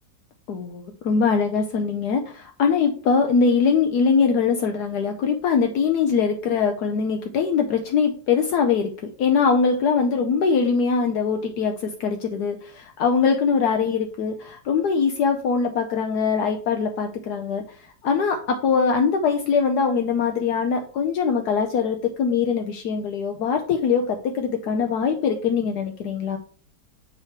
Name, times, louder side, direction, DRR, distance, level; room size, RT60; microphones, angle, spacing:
voice 1, 0.5-17.6 18.0-26.4, left 5 dB, 75° left, 4 dB, 1.2 m, -22 dB
7.6 x 3.0 x 4.5 m, 0.42 s
omnidirectional pair, 1.8 m